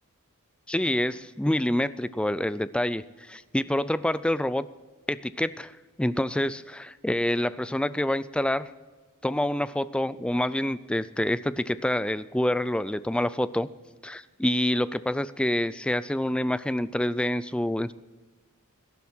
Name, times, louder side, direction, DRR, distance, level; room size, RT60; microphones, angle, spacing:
voice 1, 0.7-4.7 5.1-5.7 6.0-8.7 9.2-13.7 14.0-17.9, left 1 dB, 5° left, 15 dB, 0.4 m, -27 dB
18.0 x 11.0 x 4.4 m, 1.3 s
head